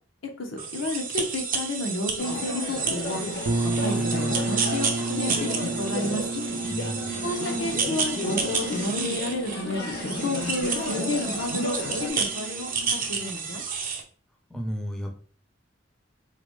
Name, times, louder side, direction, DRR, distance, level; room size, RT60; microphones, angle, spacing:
voice 1, 0.4-3.2 3.6-6.2 7.2-9.8 10.2-13.6, left 2 dB, 85° left, 2 dB, 0.8 m, -31 dB
sound 1, 0.6-14.0, right 5 dB, 45° right, 0.6 m, -31 dB
sound 2, 2.2-12.1, left 3 dB, 55° left, 0.6 m, -33 dB
sound 3, 3.4-13.1, right 3 dB, 90° right, 0.5 m, -33 dB
voice 2, 6.7-7.3 14.5-15.1, equal, 5° left, 2 dB, 0.5 m, -33 dB
3.8 x 2.2 x 3.0 m, 0.42 s
head